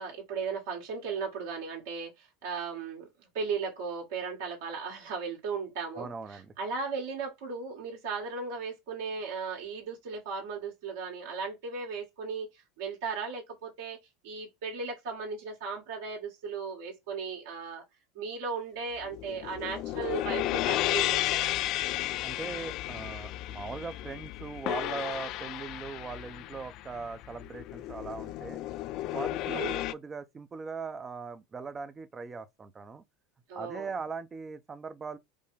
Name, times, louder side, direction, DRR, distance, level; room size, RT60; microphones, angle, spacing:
voice 1, 0.0-14.0 14.2-17.8 18.1-21.5 29.5-29.8 33.5-33.9, right 5 dB, 75° right, 2.0 m, -36 dB
voice 2, 5.9-6.5 22.2-28.6 29.1-33.0 33.5-35.2, right 5 dB, 25° right, 0.6 m, -40 dB
sound 1, 19.0-29.9, left 15 dB, 55° left, 0.3 m, -33 dB
5.2 x 2.2 x 3.3 m
hypercardioid pair, 100°, 0 cm